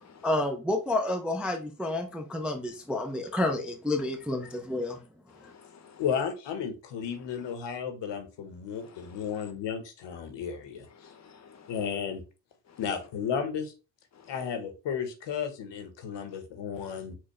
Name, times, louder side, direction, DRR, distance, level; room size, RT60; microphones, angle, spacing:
voice 1, 0.2-5.0, left 2 dB, ahead, 0.4 m, -30 dB
voice 2, 5.3-6.0 8.7-9.5 10.9-11.8 12.7-12.8 14.1-14.4 16.3-16.4 16.8-17.0, left 6 dB, 35° left, 0.8 m, -54 dB
voice 3, 6.0-11.1 11.7-12.2 12.8-13.7 14.3-17.2, left 7 dB, 65° left, 0.9 m, -33 dB
4.4 x 2.1 x 2.9 m
supercardioid pair, 65°, 46 cm